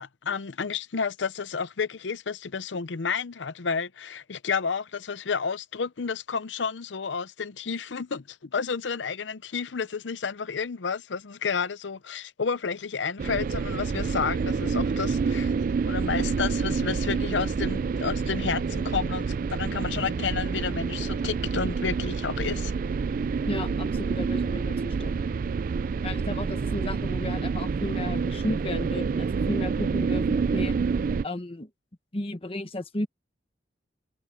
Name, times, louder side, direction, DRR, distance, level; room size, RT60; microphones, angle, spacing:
voice 1, 0.0-15.5 15.9-22.7, left 5 dB, 85° left, 0.7 m, -31 dB
sound 1, 13.2-31.2, right 5 dB, 50° right, 0.3 m, -28 dB
voice 2, 23.5-25.2 26.0-30.7 31.2-31.7 32.1-33.1, left 1 dB, 30° left, 1.3 m, -34 dB
head